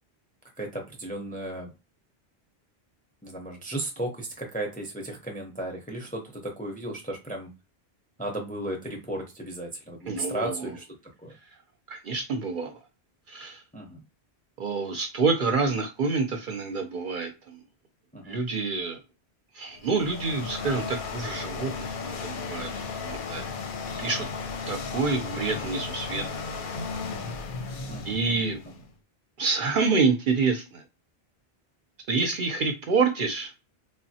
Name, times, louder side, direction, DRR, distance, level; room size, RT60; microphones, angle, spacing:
voice 1, 0.6-1.7 3.2-7.5 8.2-10.8 11.2-11.3 13.7-14.0 18.1-18.4 27.9-28.2, right 1 dB, 10° left, 2 dB, 0.5 m, -35 dB
voice 2, 10.1-10.7 11.9-12.8 13.3-13.6 14.6-17.6 18.2-19.0 19.5-22.7 23.0-23.5 24.0-24.3 24.7-26.4 28.0-28.6 29.4-30.8 32.1-33.5, right 4 dB, 60° right, 5 dB, 0.6 m, -27 dB
sound 1, 19.7-28.9, left 4 dB, 60° left, 0.6 m, -35 dB
3.3 x 2.0 x 2.7 m, 0.27 s
omnidirectional pair, 1.1 m